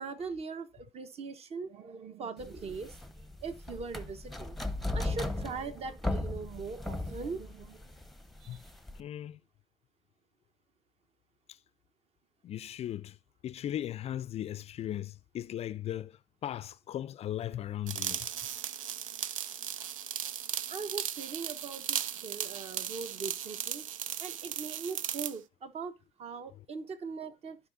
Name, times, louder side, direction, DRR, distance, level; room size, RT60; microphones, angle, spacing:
voice 1, 0.0-4.6 4.9-7.8 8.4-8.6 20.7-23.9 24.2-27.6, right 4 dB, 40° right, 1.2 m, -41 dB
sound 1, 2.4-9.0, left 2 dB, ahead, 0.9 m, -37 dB
voice 2, 9.0-9.4 12.4-13.1 13.4-16.1 16.4-18.2, left 11 dB, 40° left, 0.4 m, -37 dB
sound 2, 17.9-25.4, right 10 dB, 90° right, 0.4 m, -37 dB
14.5 x 5.0 x 2.6 m
hypercardioid pair, 70°, 16 cm